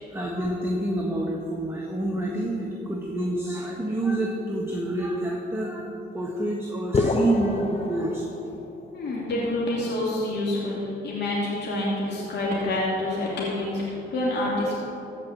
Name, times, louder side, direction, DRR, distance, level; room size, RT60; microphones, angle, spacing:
voice 1, 0.1-8.4, right 1 dB, 10° right, -2 dB, 1.4 m, -28 dB
sound 1, 6.9-8.9, left 2 dB, 30° left, 0.8 m, -27 dB
voice 2, 8.9-14.7, left 1 dB, 60° left, -6 dB, 2.6 m, -27 dB
15.0 x 5.2 x 7.4 m, 2.9 s
cardioid pair, 90°, 20 cm